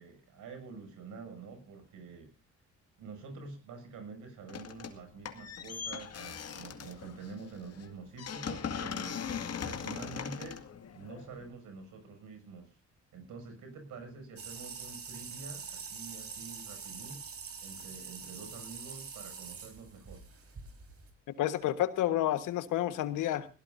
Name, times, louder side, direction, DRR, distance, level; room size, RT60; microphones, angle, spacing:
voice 1, 0.0-2.3 3.0-9.2 9.6-10.6 10.9-12.8 13.1-17.2 17.6-20.2, right 4 dB, 80° right, 6 dB, 6.8 m, -47 dB
sound 1, 4.5-5.0 5.3-11.5, left 7 dB, 55° left, 2.2 m, -40 dB
sound 2, 14.4-21.1, right 5 dB, 50° right, 4.2 m, -45 dB
voice 2, 21.4-23.5, left 13 dB, 90° left, 12 dB, 1.5 m, -30 dB
21.0 x 17.5 x 2.7 m, 0.34 s
cardioid pair, 90°, 30 cm